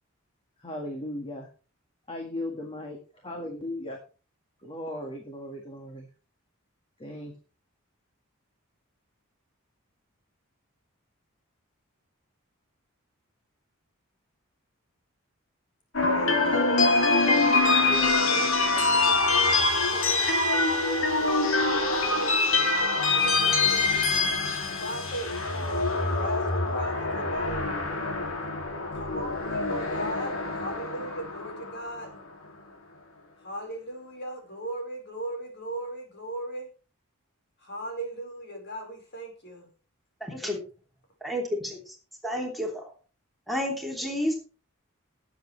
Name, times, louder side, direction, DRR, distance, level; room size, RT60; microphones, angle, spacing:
voice 1, 0.6-1.5 2.1-3.0 3.2-4.0 4.6-6.1 7.0-7.3, left 1 dB, 25° left, 2 dB, 1.8 m, -36 dB
sound 1, 15.9-32.1, left 3 dB, 70° left, 2.8 m, -25 dB
voice 2, 16.0-20.3 21.1-24.0 24.8-25.3 26.1-27.8 28.9-32.1 33.4-36.7 37.6-39.7 40.4-40.5, right 1 dB, 55° left, 3 dB, 4.9 m, -38 dB
voice 3, 40.2-40.6 41.2-41.9 42.2-42.9 43.5-44.3, left 1 dB, ahead, 0 dB, 3.0 m, -30 dB
18.5 x 7.8 x 3.3 m, 0.36 s
head